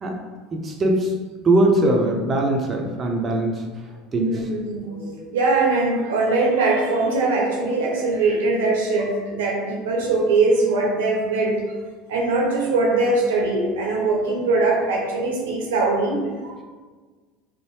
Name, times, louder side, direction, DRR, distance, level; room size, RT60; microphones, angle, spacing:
voice 1, 0.5-1.1 1.4-3.6 4.1-4.5, right 1 dB, 30° right, 1 dB, 0.5 m, -21 dB
voice 2, 4.1-11.6 12.1-16.6, right 3 dB, 80° right, -1 dB, 0.6 m, -21 dB
2.6 x 2.1 x 3.1 m, 1.4 s
hypercardioid pair, 80°, 0 cm